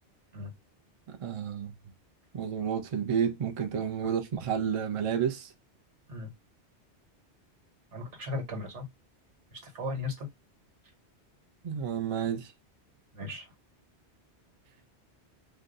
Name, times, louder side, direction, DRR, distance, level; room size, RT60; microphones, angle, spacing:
voice 1, 1.1-1.7 2.3-5.5 11.6-12.5, right 8 dB, 40° right, 0.5 m, -30 dB
voice 2, 7.9-8.8 9.5-10.3 13.1-13.5, left 2 dB, 90° right, 1.5 m, -36 dB
2.6 x 2.2 x 3.8 m
omnidirectional pair, 1.2 m